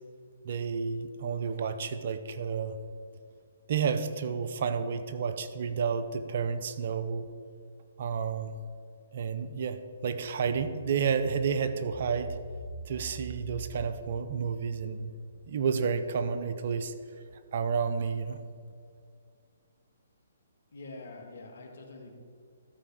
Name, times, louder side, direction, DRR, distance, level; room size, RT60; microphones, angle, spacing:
voice 1, 0.4-2.8 3.7-7.3 8.0-8.5 9.1-12.4 12.9-15.1 15.5-16.9 17.5-18.4, right 6 dB, 55° right, 10 dB, 0.7 m, -31 dB
sound 1, 11.9-16.1 16.5-16.6, right 3 dB, 30° right, 1.0 m, -45 dB
voice 2, 20.7-22.2, left 2 dB, 70° left, 3 dB, 1.7 m, -45 dB
13.0 x 5.0 x 6.1 m, 2.3 s
hypercardioid pair, 135°, 0 cm